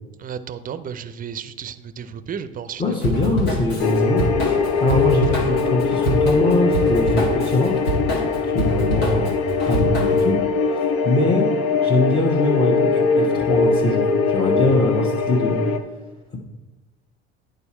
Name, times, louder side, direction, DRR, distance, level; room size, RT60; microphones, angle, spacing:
voice 1, 0.2-3.0, right 7 dB, 30° right, 13 dB, 0.6 m, -33 dB
voice 2, 2.8-7.7 8.5-9.4 9.7-10.4 10.7-11.4 11.8-15.6, left 2 dB, 20° left, -2 dB, 1.3 m, -22 dB
Drum kit / Drum, 3.0-10.3, equal, 80° left, 2.0 m, -25 dB
sound 1, 3.8-15.8, left 4 dB, 60° left, 0.8 m, -21 dB
9.7 x 5.1 x 4.3 m, 1.2 s
hypercardioid pair, 70°, 30 cm